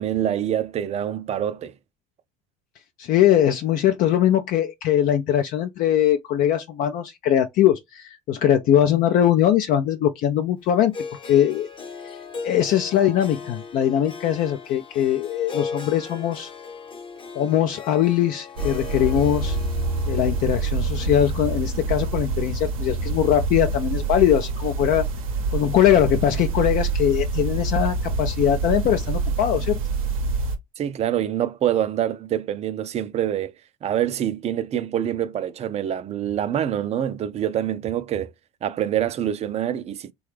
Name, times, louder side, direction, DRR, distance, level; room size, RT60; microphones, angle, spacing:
voice 1, 0.0-1.7 30.8-33.5 33.8-38.3 38.6-40.1, right 10 dB, 40° right, 0.5 m, -25 dB
voice 2, 3.0-10.9 11.2-11.7 12.4-16.5 17.3-19.6 20.1-25.0 25.5-29.8, left 10 dB, 55° left, 0.4 m, -21 dB
Harp, 10.9-23.1, left 5 dB, 30° left, 0.7 m, -38 dB
sound 1, 18.6-30.6, right 3 dB, 85° right, 0.7 m, -26 dB
3.2 x 2.3 x 3.2 m
hypercardioid pair, 70°, 17 cm